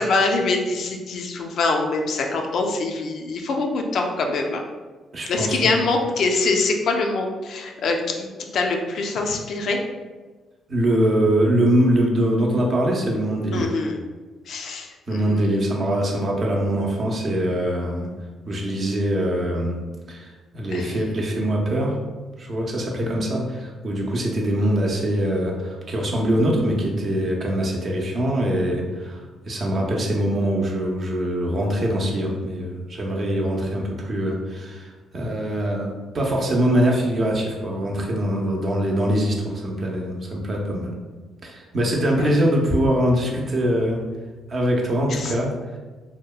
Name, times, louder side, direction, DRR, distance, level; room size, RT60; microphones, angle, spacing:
voice 1, 0.0-4.6 5.3-9.8 13.5-14.0 14.5-15.5 20.7-21.0 45.1-45.3, left 3 dB, 65° left, 2 dB, 0.3 m, -24 dB
voice 2, 5.1-5.7 10.7-13.8 15.1-18.1 18.5-19.8 20.1-22.0 22.4-40.9 41.4-44.0 44.5-45.5, equal, 45° right, -1 dB, 0.5 m, -23 dB
2.8 x 2.1 x 2.3 m, 1.3 s
cardioid pair, 90°, 0 cm